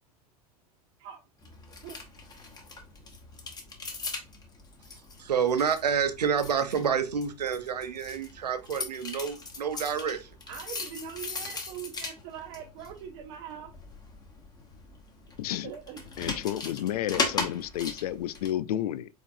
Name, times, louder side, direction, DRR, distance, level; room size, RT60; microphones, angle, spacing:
sound 1, 1.4-18.5, left 3 dB, 20° left, 1.2 m, -39 dB
voice 1, 5.2-10.3, right 7 dB, 85° right, 0.7 m, -28 dB
voice 2, 10.5-13.7 15.6-16.0, right 9 dB, 55° right, 0.8 m, -42 dB
voice 3, 15.4-15.7 16.2-19.1, left 12 dB, 70° left, 0.4 m, -31 dB
4.7 x 4.0 x 2.6 m
hypercardioid pair, 90°, 20 cm